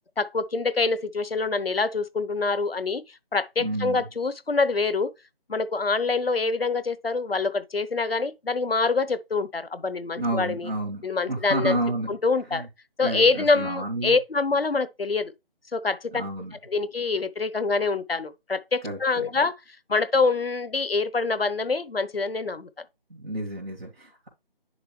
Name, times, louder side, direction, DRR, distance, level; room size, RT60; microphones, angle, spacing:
voice 1, 0.2-5.1 5.5-10.7 11.0-11.8 12.1-12.7 13.0-15.3 15.7-16.2 16.7-19.6 19.9-22.7, left 4 dB, 75° left, 0.9 m, -25 dB
voice 2, 3.6-4.1 10.2-12.1 12.5-12.7 13.0-14.2 16.1-16.5 18.8-19.3 23.1-24.3, right 1 dB, 80° right, 2.7 m, -30 dB
10.0 x 3.7 x 3.2 m
figure-of-eight pair, 160°, 30 cm